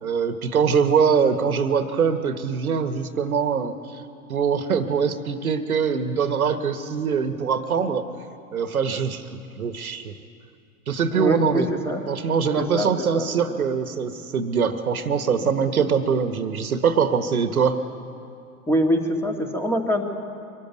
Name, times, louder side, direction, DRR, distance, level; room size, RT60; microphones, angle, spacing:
voice 1, 0.0-4.0 4.3-8.0 8.5-9.2 9.6-10.1 10.9-11.7 12.1-17.8, right 6 dB, 70° right, 10 dB, 1.4 m, -23 dB
voice 2, 11.1-12.0 12.6-13.6 14.7-14.8 15.1-15.7 18.7-20.0, equal, 5° left, 3 dB, 2.0 m, -25 dB
24.0 x 13.5 x 9.4 m, 2.5 s
figure-of-eight pair, 95°, 44 cm